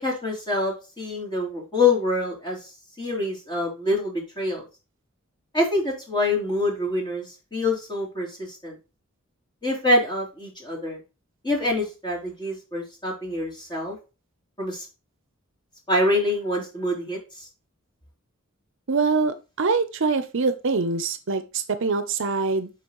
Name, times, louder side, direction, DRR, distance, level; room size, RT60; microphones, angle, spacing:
voice 1, 0.0-2.6 3.0-4.6 5.5-8.8 9.6-11.0 11.4-14.0 14.6-14.8 15.9-17.5, left 2 dB, 20° left, -3 dB, 3.3 m, -25 dB
voice 2, 18.9-22.7, right 4 dB, 60° right, 11 dB, 0.6 m, -24 dB
11.0 x 4.2 x 3.0 m, 0.30 s
head